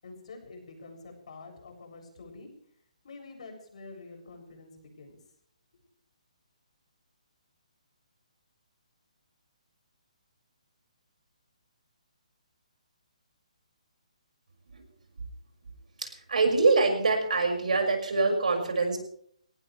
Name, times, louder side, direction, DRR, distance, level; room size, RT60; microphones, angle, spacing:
voice 1, 0.0-2.5 3.0-5.2 5.7-5.8, left 3 dB, 60° left, 3 dB, 7.3 m, -47 dB
voice 2, 16.0-19.0, right 3 dB, 80° right, 4 dB, 6.0 m, -25 dB
23.5 x 18.0 x 3.4 m, 0.63 s
hypercardioid pair, 160°, 4 cm